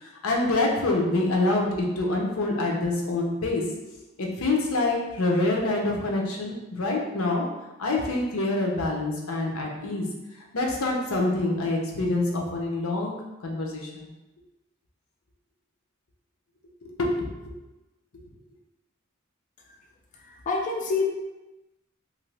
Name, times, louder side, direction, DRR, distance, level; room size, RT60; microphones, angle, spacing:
voice 1, 0.0-3.6 4.2-7.4 7.8-10.1 10.5-13.1 13.4-14.1 16.8-17.5, left 2 dB, 90° left, -1 dB, 0.7 m, -26 dB
voice 2, 20.1-21.0, left 3 dB, 40° left, -1 dB, 0.3 m, -28 dB
2.8 x 2.5 x 3.2 m, 1.0 s
head